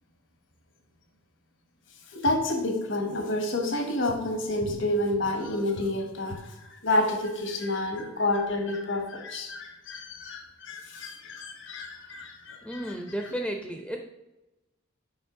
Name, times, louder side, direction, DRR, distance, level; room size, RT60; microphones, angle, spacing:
voice 1, 2.1-12.9, left 1 dB, 65° left, 4 dB, 1.3 m, -29 dB
voice 2, 12.6-14.0, right 1 dB, 5° left, 2 dB, 0.7 m, -33 dB
8.0 x 5.4 x 3.8 m, 1.0 s
head